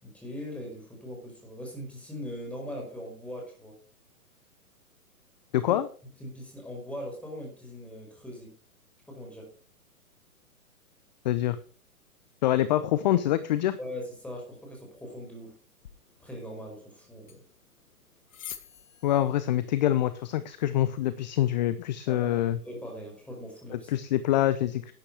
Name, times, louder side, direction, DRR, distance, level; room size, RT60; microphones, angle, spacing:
voice 1, 0.0-3.8 5.7-5.8 6.2-8.5 9.1-9.5 13.8-15.5 16.2-17.4 22.1-22.3 22.6-23.9, equal, 5° left, 0 dB, 4.9 m, -40 dB
voice 2, 5.5-5.9 11.2-11.6 12.4-13.8 19.0-22.6 23.7-24.9, left 13 dB, 30° left, 14 dB, 0.6 m, -25 dB
sound 1, 15.8-21.8, left 9 dB, 60° left, 1.7 m, -50 dB
12.0 x 9.8 x 4.8 m, 0.41 s
figure-of-eight pair, 125°, 45 cm